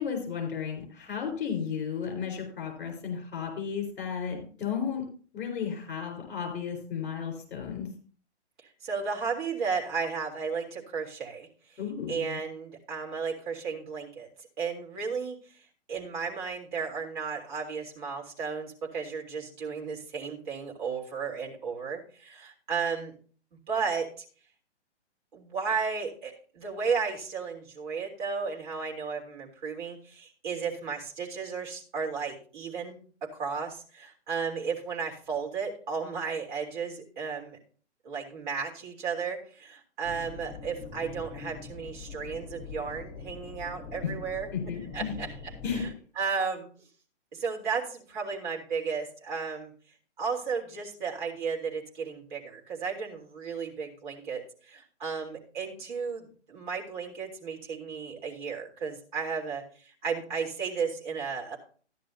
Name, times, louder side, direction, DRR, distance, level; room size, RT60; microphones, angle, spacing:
voice 1, 0.0-5.1 5.3-7.9 11.8-12.4 44.0-44.1 44.5-45.1 45.6-45.8, left 7 dB, 50° left, 2 dB, 4.2 m, -33 dB
voice 2, 8.8-11.8 12.1-23.1 23.7-24.2 25.3-37.6 38.0-44.5 44.9-45.3 45.7-45.9 46.2-46.7 47.3-49.7 50.2-61.6, right 5 dB, 45° right, -1 dB, 3.3 m, -34 dB
sound 1, 40.0-45.9, left 5 dB, 30° left, 3.5 m, -43 dB
13.5 x 10.5 x 2.8 m, 0.42 s
figure-of-eight pair, 125°, 35 cm